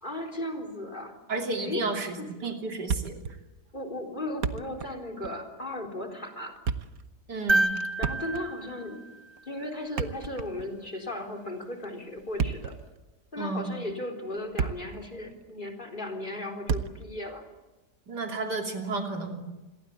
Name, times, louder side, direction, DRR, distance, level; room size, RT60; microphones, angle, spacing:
voice 1, 0.0-1.2 1.6-1.8 2.2-2.5 3.7-6.6 8.0-9.0 9.4-12.8 13.3-17.5, left 1 dB, 30° left, 3 dB, 4.0 m, -36 dB
voice 2, 1.3-3.2 7.3-7.7 13.4-13.7 18.1-19.4, right 3 dB, 90° right, 3 dB, 3.6 m, -32 dB
Thump thud, 2.9-3.4 3.7-3.8 4.2-5.0 5.2-5.4 6.4-7.0 8.0-8.6 9.8-10.8 12.2-12.8 13.6-13.7 14.3-15.0 15.3-15.4 16.7-17.1, right 6 dB, 60° right, 1.6 m, -31 dB
sound 1, 7.5-9.8 11.8-11.9, right 2 dB, 15° right, 1.2 m, -29 dB
29.0 x 22.0 x 8.4 m, 1.1 s
omnidirectional pair, 1.7 m